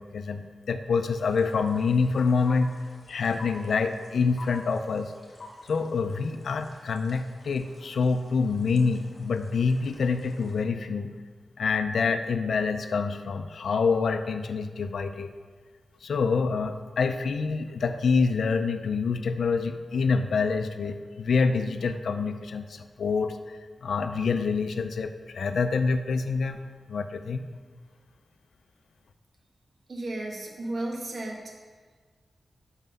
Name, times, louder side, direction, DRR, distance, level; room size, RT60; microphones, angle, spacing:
voice 1, 0.0-2.7 3.1-5.1 5.7-11.1 11.6-15.3 16.0-26.6 26.9-27.4, left 4 dB, 80° left, 9 dB, 0.4 m, -26 dB
sound 1, 1.1-10.6, left 1 dB, 45° left, 1.8 m, -49 dB
voice 2, 29.9-31.4, right 2 dB, 60° right, -1 dB, 1.3 m, -33 dB
6.0 x 5.7 x 5.4 m, 1.5 s
wide cardioid pair, 120°, 0 cm